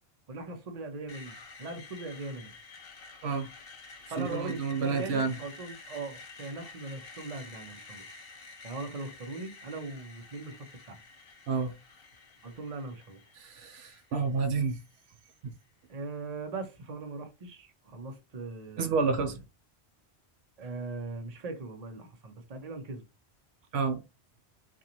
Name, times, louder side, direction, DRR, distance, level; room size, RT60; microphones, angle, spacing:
voice 1, 0.3-2.5 4.1-8.0 8.6-11.0 12.4-13.2 15.9-19.3 20.6-23.0, right 3 dB, 40° right, 0.8 m, -40 dB
Screech, 1.1-15.0, left 3 dB, 65° left, 1.1 m, -50 dB
voice 2, 4.2-5.4 11.5-11.7 13.4-14.8 15.4-15.5 18.8-19.4 23.7-24.0, right 4 dB, 85° right, 0.9 m, -29 dB
3.9 x 2.6 x 2.9 m
omnidirectional pair, 1.1 m